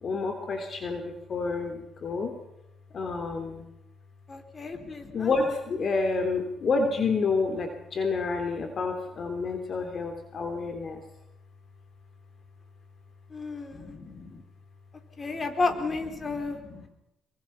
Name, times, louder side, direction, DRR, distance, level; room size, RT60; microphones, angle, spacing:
voice 1, 0.0-2.4 2.9-3.7 4.7-11.0 13.7-14.4 16.2-16.9, left 4 dB, 50° left, 5 dB, 3.2 m, -30 dB
voice 2, 4.3-5.3 13.3-13.9 15.2-16.6, left 3 dB, 35° left, 6 dB, 3.9 m, -32 dB
26.0 x 24.0 x 5.8 m, 0.86 s
cardioid pair, 90°, 0 cm